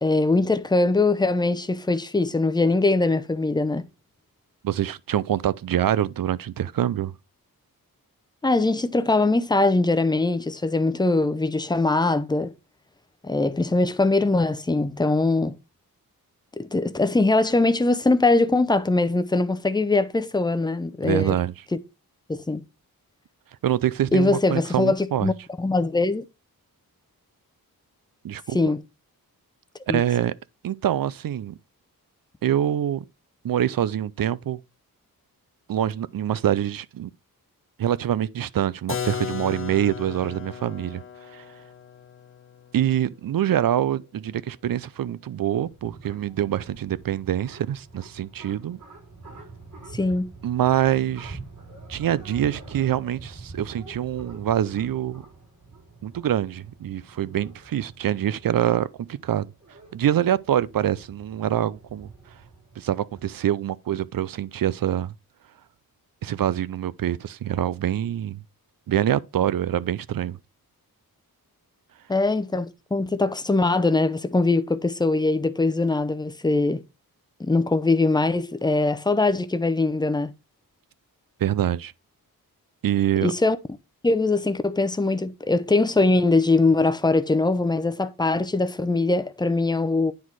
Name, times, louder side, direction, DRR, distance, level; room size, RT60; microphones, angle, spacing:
voice 1, 0.0-3.8 8.4-12.5 13.2-15.5 16.6-21.4 22.3-22.6 24.1-26.2 28.5-28.8 29.9-30.0 49.9-50.3 72.1-76.8 77.4-80.3 83.2-83.6 84.0-90.1, left 2 dB, 10° left, 0.6 m, -22 dB
voice 2, 4.6-7.1 21.0-21.5 23.6-25.3 28.2-28.6 29.9-30.3 30.6-31.6 32.4-33.0 33.4-34.6 35.7-37.1 37.8-41.0 41.3-41.4 42.7-48.8 50.4-51.4 51.9-55.2 56.0-59.5 59.9-62.1 62.8-65.1 66.2-68.4 68.9-70.4 81.4-81.9 82.8-83.3, right 11 dB, 65° right, 0.5 m, -25 dB
Keyboard (musical), 38.9-44.5, left 7 dB, 35° left, 0.9 m, -36 dB
sound 1, 45.2-63.3, right 3 dB, 50° right, 5.3 m, -45 dB
9.5 x 4.2 x 4.6 m
wide cardioid pair, 150°, 37 cm